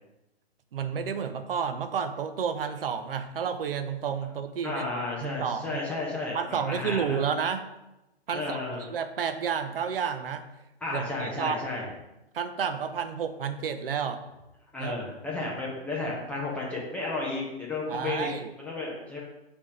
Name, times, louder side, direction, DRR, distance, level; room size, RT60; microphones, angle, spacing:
voice 1, 0.7-4.8 5.2-5.8 6.3-7.7 8.3-8.6 8.9-10.4 10.9-11.6 12.3-14.2 14.8-15.0 17.9-18.5, right 7 dB, 60° right, 8 dB, 0.7 m, -31 dB
voice 2, 4.6-6.4 6.6-7.2 8.3-8.9 10.8-11.8 14.7-18.3 18.6-19.2, left 2 dB, 5° left, -5 dB, 0.5 m, -32 dB
6.5 x 3.0 x 4.8 m, 0.95 s
hypercardioid pair, 135°, 32 cm